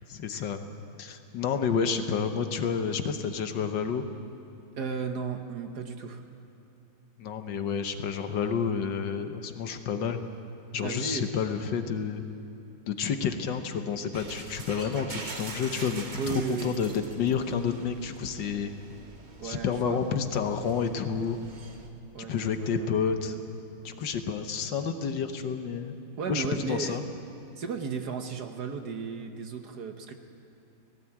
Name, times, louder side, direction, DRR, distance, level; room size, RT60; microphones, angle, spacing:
voice 1, 0.1-0.6 1.0-4.0 7.2-10.2 10.7-12.2 12.9-18.7 19.4-21.4 22.3-23.4 23.8-26.0 26.3-27.0, left 6 dB, 65° left, 7 dB, 1.6 m, -30 dB
voice 2, 4.8-6.2 10.8-11.3 16.1-16.8 18.7-18.8 19.4-20.0 22.1-22.9 26.2-27.0 27.6-30.1, right 5 dB, 55° right, 6 dB, 1.5 m, -34 dB
sound 1, 14.1-21.9, right 3 dB, 30° right, 1.0 m, -44 dB
17.5 x 17.5 x 8.6 m, 2.9 s
omnidirectional pair, 2.2 m